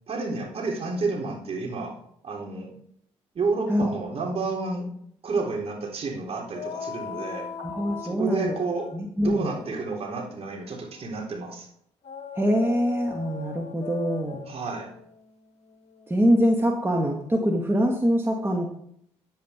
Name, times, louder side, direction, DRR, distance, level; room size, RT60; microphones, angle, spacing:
voice 1, 0.1-2.0 2.2-2.7 3.3-4.9 5.2-7.5 8.0-8.9 9.2-11.7 14.5-14.9, right 3 dB, 50° right, -1 dB, 3.8 m, -30 dB
sound 1, 6.5-11.2 12.0-16.7, left 6 dB, 55° left, 1.2 m, -40 dB
voice 2, 7.6-8.5 8.9-9.5 12.4-14.5 16.1-18.7, equal, 20° right, 1 dB, 1.9 m, -24 dB
10.0 x 8.8 x 4.5 m, 0.68 s
supercardioid pair, 55°, 13 cm